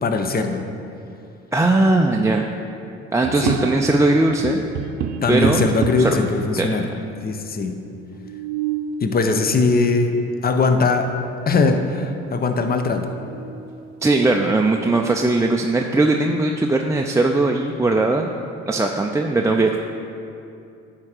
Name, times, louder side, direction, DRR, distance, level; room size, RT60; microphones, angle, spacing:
voice 1, 0.0-0.6 3.4-3.6 5.2-6.9 7.2-7.8 9.0-10.2 10.4-11.1 11.5-13.1, left 3 dB, 30° left, 6 dB, 0.8 m, -20 dB
voice 2, 1.5-2.5 3.1-4.6 5.3-5.7 6.0-6.2 6.6-6.7 14.0-18.3 18.7-19.8, right 2 dB, 10° right, 1 dB, 0.5 m, -19 dB
sound 1, 3.2-4.1 4.4-6.2 7.0-7.1 7.3-7.4 8.1-9.0 10.7-10.8 11.3-11.8 12.2-12.3 12.8-13.7, right 7 dB, 60° right, 0.7 m, -29 dB
9.6 x 3.7 x 6.6 m, 2.6 s
hypercardioid pair, 55°, 31 cm